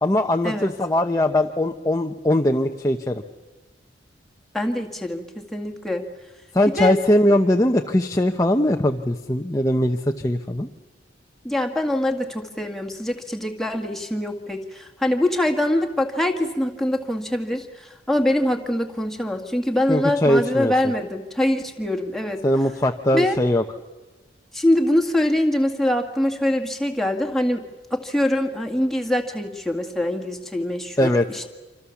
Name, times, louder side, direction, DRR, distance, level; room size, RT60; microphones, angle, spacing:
voice 1, 0.0-3.2 6.5-10.7 19.9-20.7 22.4-23.6 31.0-31.5, left 1 dB, 20° left, 3 dB, 0.9 m, -20 dB
voice 2, 4.5-6.1 6.8-7.0 11.4-22.4 23.1-23.4 24.5-27.7 27.9-31.5, left 1 dB, ahead, 2 dB, 1.9 m, -24 dB
27.0 x 25.5 x 7.2 m, 1.2 s
head